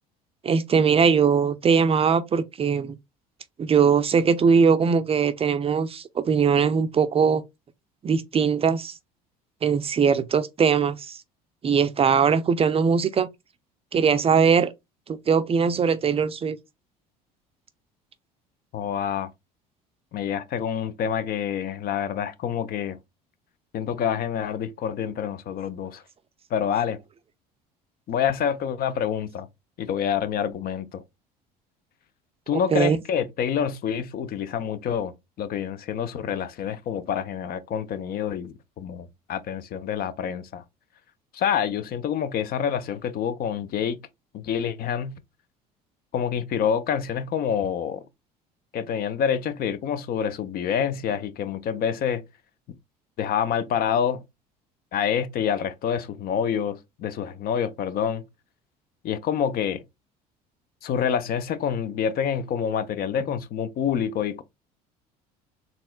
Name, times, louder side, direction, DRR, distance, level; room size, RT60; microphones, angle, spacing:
voice 1, 0.4-3.0 3.6-7.4 8.0-9.0 9.6-11.2 11.6-13.3 13.9-14.7 15.1-16.6 32.5-33.0, right 6 dB, 30° right, 0.5 m, -21 dB
voice 2, 18.7-19.3 20.1-23.0 23.7-26.0 26.5-27.0 28.1-29.5 29.8-31.0 32.5-35.1 35.4-40.6 41.3-44.0 44.3-45.2 46.1-48.0 48.7-52.2 53.2-54.2 54.9-58.2 59.0-59.8 60.8-64.4, left 8 dB, 45° left, 0.6 m, -27 dB
4.2 x 3.5 x 2.3 m
hypercardioid pair, 65°, 21 cm